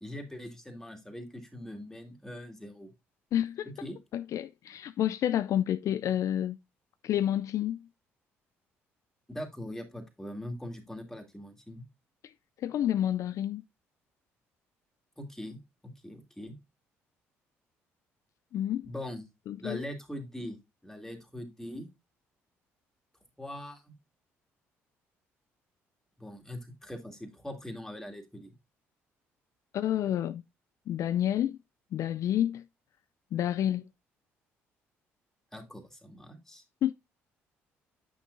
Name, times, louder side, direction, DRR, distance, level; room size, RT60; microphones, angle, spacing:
voice 1, 0.0-2.9 3.8-4.0 9.3-11.8 15.2-15.6 16.0-16.5 18.8-19.3 19.6-21.9 23.4-23.9 26.2-28.5 35.5-36.6, left 1 dB, 5° left, 2.3 m, -41 dB
voice 2, 3.3-3.7 4.1-6.6 7.0-7.8 12.6-13.6 18.5-18.9 19.5-19.8 29.7-30.4 30.9-31.6 31.9-32.6 33.3-33.9 36.8-36.9, left 11 dB, 60° left, 0.3 m, -29 dB
8.4 x 6.2 x 2.6 m
hypercardioid pair, 55°, 6 cm